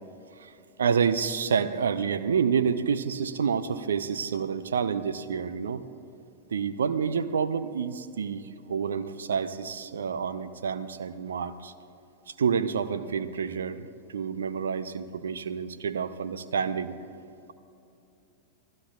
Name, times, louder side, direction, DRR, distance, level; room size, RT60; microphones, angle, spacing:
voice 1, 0.8-5.8 6.5-11.7 12.4-13.9 14.1-17.0, right 6 dB, 65° right, 12 dB, 0.7 m, -28 dB
28.5 x 18.0 x 2.4 m, 2.8 s
figure-of-eight pair, 90°, 0 cm